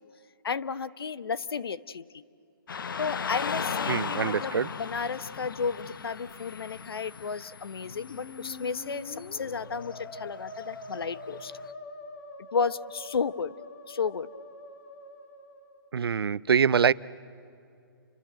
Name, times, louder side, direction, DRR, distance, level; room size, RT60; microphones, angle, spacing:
voice 1, 0.4-2.2 3.0-11.5 12.5-13.5 13.9-14.3, left 5 dB, 85° left, 16 dB, 1.0 m, -33 dB
Car passing by / Traffic noise roadway noise, 2.7-11.7, left 6 dB, 65° left, 1.2 m, -38 dB
sound 1, 3.3-9.4, left 10 dB, 20° left, 7.2 m, -59 dB
voice 2, 3.9-4.7 15.9-16.9, right 7 dB, 85° right, 19 dB, 0.7 m, -24 dB
Musical instrument, 7.8-15.9, left 2 dB, 40° left, 2.7 m, -45 dB
29.0 x 25.5 x 7.7 m, 2.5 s
hypercardioid pair, 175°, 12 cm